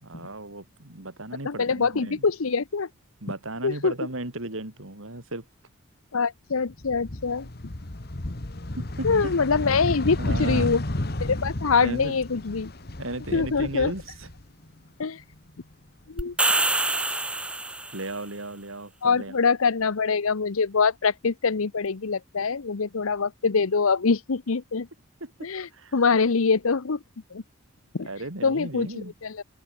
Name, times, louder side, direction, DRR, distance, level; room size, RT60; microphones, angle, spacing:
voice 1, 0.0-2.3 3.2-5.4 9.0-9.3 10.2-10.8 11.8-12.2 13.0-14.3 17.9-19.4 25.2-25.3 25.7-25.9 28.0-29.1, right 2 dB, 75° right, 3.4 m, -35 dB
voice 2, 1.4-2.9 3.6-3.9 6.1-7.5 9.0-10.8 11.2-12.7 13.3-13.9 15.0-15.2 16.1-16.3 19.0-24.9 25.4-27.0 27.3-27.4 27.9-28.1 28.4-29.4, left 5 dB, 90° left, 0.8 m, -24 dB
sound 1, 6.7-14.8 15.2-16.3, left 1 dB, 50° left, 1.5 m, -32 dB
sound 2, 16.2-18.1, right 2 dB, 5° right, 0.5 m, -25 dB
open air
head